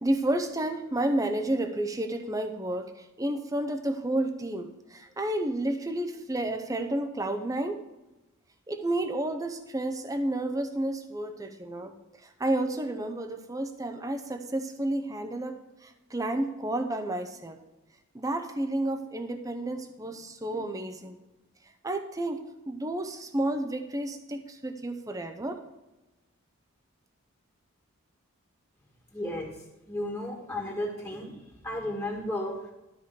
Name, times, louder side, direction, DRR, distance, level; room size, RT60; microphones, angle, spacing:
voice 1, 0.0-7.8 8.7-11.9 12.2-17.6 18.1-21.2 21.8-25.6, right 1 dB, 15° right, 7 dB, 0.6 m, -31 dB
voice 2, 29.1-29.5 29.9-31.3 31.6-32.5, left 1 dB, 15° left, -1 dB, 1.6 m, -33 dB
12.5 x 5.0 x 6.7 m, 1.0 s
head